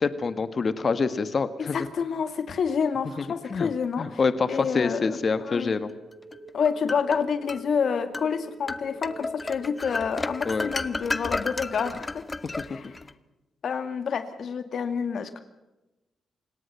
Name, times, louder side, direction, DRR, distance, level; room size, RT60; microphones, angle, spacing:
voice 1, 0.0-1.8 3.5-3.7 4.0-5.9 10.5-10.7 12.4-12.8, left 4 dB, 50° left, 12 dB, 1.6 m, -26 dB
voice 2, 1.6-4.2 4.5-5.7 6.5-12.2 12.7-12.9 13.6-15.4, left 6 dB, 65° left, 10 dB, 2.1 m, -28 dB
sound 1, 5.4-11.8, right 3 dB, 45° right, 7.8 m, -48 dB
sound 2, 6.3-7.6 8.1-8.3 8.7-13.1, left 3 dB, 30° left, 1.1 m, -33 dB
28.5 x 18.5 x 5.7 m, 1.0 s
supercardioid pair, 45°, 0 cm